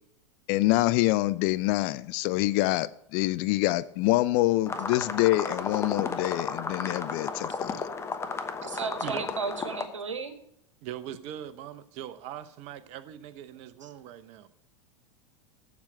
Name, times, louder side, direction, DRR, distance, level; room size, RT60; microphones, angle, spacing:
voice 1, 0.5-7.8, left 18 dB, 50° left, 0.5 m, -26 dB
sound 1, 4.7-9.8, left 4 dB, 15° left, 1.1 m, -33 dB
voice 2, 8.6-10.3 13.8-13.9, right 5 dB, 80° right, 1.3 m, -34 dB
voice 3, 10.8-14.5, right 11 dB, 45° right, 0.8 m, -41 dB
7.3 x 7.3 x 7.6 m
figure-of-eight pair, 90°, 16 cm